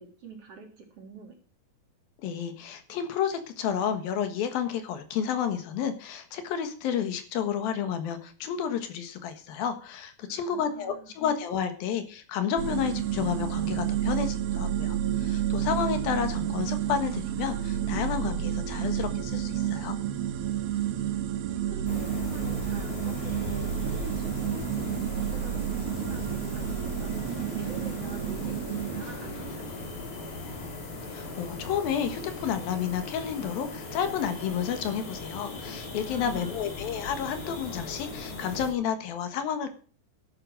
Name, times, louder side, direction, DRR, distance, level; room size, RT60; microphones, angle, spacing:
voice 1, 0.0-1.4 10.3-11.2 13.9-14.1 21.5-27.1 27.5-30.3 36.1-36.6, right 4 dB, 40° right, 3 dB, 3.8 m, -45 dB
voice 2, 2.2-19.9 31.1-39.7, left 8 dB, 75° left, 9 dB, 3.2 m, -31 dB
sound 1, 12.6-29.0, right 11 dB, 90° right, 3.2 m, -30 dB
sound 2, 21.9-38.7, left 3 dB, 55° left, 4.4 m, -38 dB
sound 3, 26.1-32.0, right 3 dB, 40° left, 4.5 m, -47 dB
12.0 x 11.5 x 6.3 m, 0.41 s
omnidirectional pair, 4.2 m